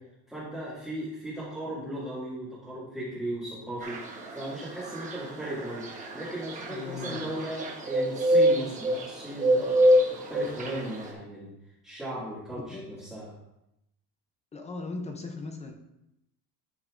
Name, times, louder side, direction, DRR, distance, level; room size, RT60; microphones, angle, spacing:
voice 1, 0.3-11.5 11.8-13.3, right 1 dB, ahead, -12 dB, 2.1 m, -37 dB
sound 1, 3.8-11.1, equal, 20° right, 1.1 m, -27 dB
voice 2, 6.7-7.4 12.6-13.1 14.5-15.7, left 3 dB, 15° left, 5 dB, 0.5 m, -39 dB
11.0 x 6.3 x 2.5 m, 0.85 s
cardioid pair, 180°, 39 cm